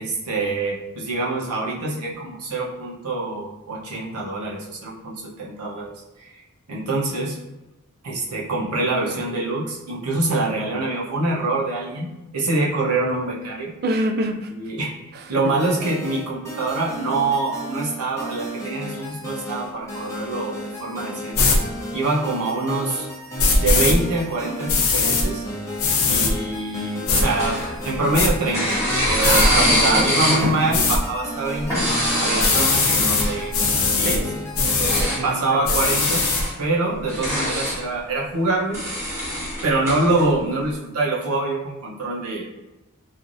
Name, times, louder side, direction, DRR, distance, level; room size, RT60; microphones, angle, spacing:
voice 1, 0.0-5.9 6.2-6.3 6.7-7.4 8.0-13.7 14.5-14.9 15.3-21.5 21.9-23.1 23.6-25.4 26.0-28.8 29.1-31.9 32.2-33.5 33.8-34.2 35.2-36.2 36.6-38.8 39.6-42.5, right 2 dB, 85° right, -3 dB, 0.7 m, -25 dB
voice 2, 13.8-14.6 15.1-15.7 29.2-30.3 34.0-36.0, right 2 dB, 45° right, 7 dB, 0.3 m, -27 dB
sound 1, 15.5-35.2, equal, 15° left, 0.6 m, -33 dB
sound 2, 21.3-21.6 23.4-23.9 24.7-25.2 25.8-26.3 27.1-27.2 27.8-28.3 29.2-29.5 30.7-31.0 32.4-33.3 33.5-34.2 34.5-35.0 35.6-36.4, left 4 dB, 65° left, 0.6 m, -20 dB
sound 3, 27.2-28.1 28.5-30.6 31.6-33.5 34.7-35.2 35.8-36.5 37.0-37.8 38.7-40.2, left 1 dB, 10° right, 1.1 m, -24 dB
3.1 x 2.4 x 2.5 m, 1.0 s
head